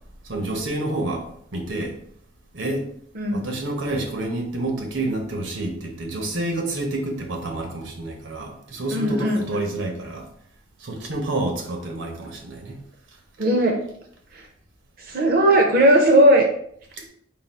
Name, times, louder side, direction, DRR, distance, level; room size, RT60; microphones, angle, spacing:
voice 1, 0.2-2.0 2.5-2.9 3.3-10.3 10.8-12.8 17.0-17.1, right 2 dB, 90° right, 2 dB, 0.9 m, -28 dB
voice 2, 8.9-9.4 13.4-13.8 14.3-14.4 15.0-16.4, right 1 dB, 50° right, 1 dB, 0.5 m, -17 dB
3.9 x 2.3 x 4.1 m, 0.67 s
head